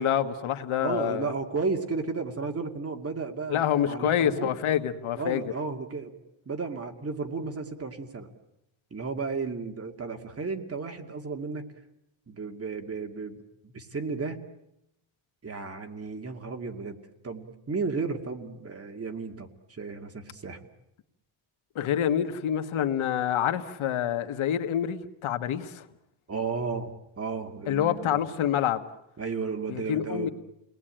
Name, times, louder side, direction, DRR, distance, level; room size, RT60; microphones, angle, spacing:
voice 1, 0.0-1.3 3.5-5.5 21.7-25.8 27.7-28.9 29.7-30.3, left 10 dB, 75° left, 8 dB, 1.7 m, -27 dB
voice 2, 0.8-4.5 5.2-6.2 6.5-8.3 8.9-11.6 12.3-14.4 15.4-17.0 17.2-20.6 26.3-26.9 27.2-28.2 29.2-30.3, right 4 dB, 30° right, 5 dB, 2.3 m, -33 dB
29.5 x 20.0 x 9.0 m, 0.86 s
cardioid pair, 130°, 49 cm